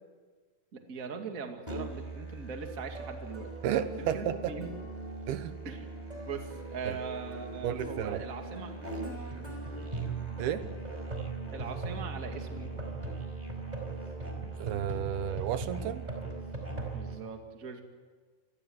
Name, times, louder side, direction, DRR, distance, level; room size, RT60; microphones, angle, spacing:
voice 1, 0.7-3.5 3.8-4.7 5.6-5.9 6.3-9.0 11.5-12.7 16.9-17.8, right 5 dB, 25° right, 4 dB, 2.1 m, -41 dB
Musical instrument, 1.7-17.2, right 3 dB, 10° right, 4.3 m, -39 dB
voice 2, 3.6-4.5 5.3-5.5 6.9-7.0 7.6-8.2 10.4-10.6 14.6-16.0, right 10 dB, 80° right, 11 dB, 3.0 m, -32 dB
27.5 x 20.0 x 8.0 m, 1.5 s
omnidirectional pair, 4.4 m